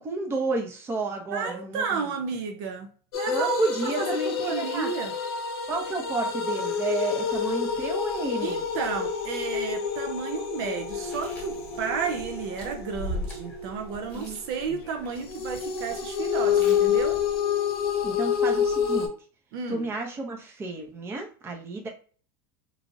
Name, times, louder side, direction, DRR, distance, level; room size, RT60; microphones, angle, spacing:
voice 1, 0.0-2.1 3.3-4.9 5.7-8.6 14.1-14.4 18.0-19.1 19.7-21.9, right 3 dB, 20° right, 0.7 m, -31 dB
voice 2, 1.3-2.9 3.1-5.1 8.4-17.2 19.5-19.9, right 6 dB, 65° right, 0.5 m, -32 dB
sound 1, 3.1-14.6 15.3-19.1, left 7 dB, 90° left, 0.8 m, -28 dB
Chewing mastication, 10.9-17.4, left 1 dB, 10° left, 1.2 m, -41 dB
3.1 x 2.4 x 2.6 m
supercardioid pair, 145°, 12 cm